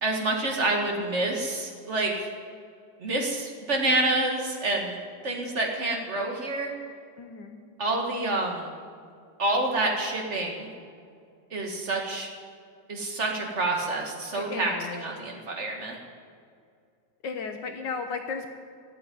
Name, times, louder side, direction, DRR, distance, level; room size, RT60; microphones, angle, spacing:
voice 1, 0.0-2.3 3.0-6.7 7.8-8.7 9.4-10.7 11.5-12.3 12.9-16.0, right 2 dB, 35° right, 1 dB, 2.0 m, -28 dB
voice 2, 7.2-7.6 14.3-15.0 17.2-18.5, left 5 dB, 65° left, 5 dB, 1.4 m, -34 dB
13.0 x 8.5 x 9.3 m, 2.3 s
omnidirectional pair, 2.2 m